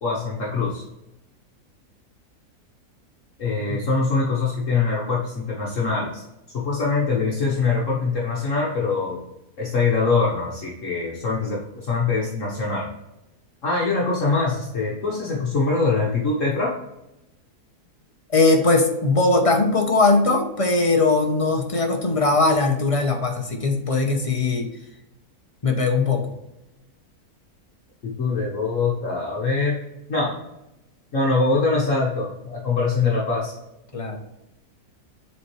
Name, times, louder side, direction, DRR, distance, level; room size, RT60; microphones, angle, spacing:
voice 1, 0.0-0.8 3.4-6.2 6.5-9.2 9.6-12.9 13.6-16.7 28.0-29.8 30.1-30.3 31.1-33.5, left 4 dB, 55° left, -3 dB, 1.5 m, -23 dB
voice 2, 18.3-24.7 25.6-26.3 33.9-34.2, left 3 dB, 30° left, 3 dB, 0.7 m, -20 dB
7.2 x 4.4 x 3.1 m, 0.90 s
omnidirectional pair, 1.7 m